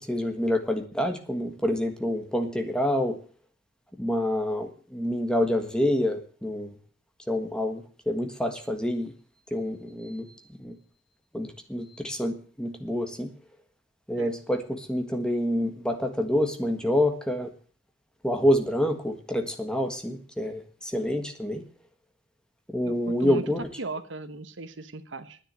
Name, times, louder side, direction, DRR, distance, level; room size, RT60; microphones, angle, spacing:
voice 1, 0.0-3.2 4.0-6.8 7.3-9.1 9.5-10.3 10.6-10.8 11.3-13.3 14.1-17.5 18.2-21.6 22.7-23.6, left 1 dB, 5° left, 6 dB, 1.5 m, -27 dB
voice 2, 22.8-23.4 23.8-25.4, right 3 dB, 75° right, 11 dB, 1.2 m, -37 dB
10.0 x 9.9 x 9.0 m, 0.43 s
head